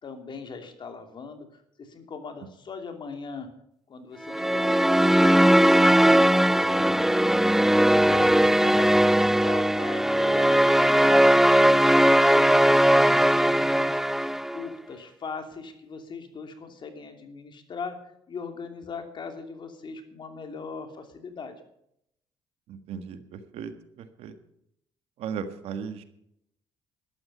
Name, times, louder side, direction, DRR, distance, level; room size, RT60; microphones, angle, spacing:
voice 1, 0.0-3.5 3.9-7.0 7.8-14.0 14.5-21.6, left 5 dB, 50° left, 6 dB, 3.0 m, -40 dB
sound 1, 4.3-14.7, right 1 dB, 5° right, 0.4 m, -19 dB
voice 2, 22.7-24.3 25.2-26.0, right 7 dB, 75° right, 9 dB, 1.6 m, -37 dB
12.5 x 12.0 x 5.6 m, 0.74 s
supercardioid pair, 75°, 10 cm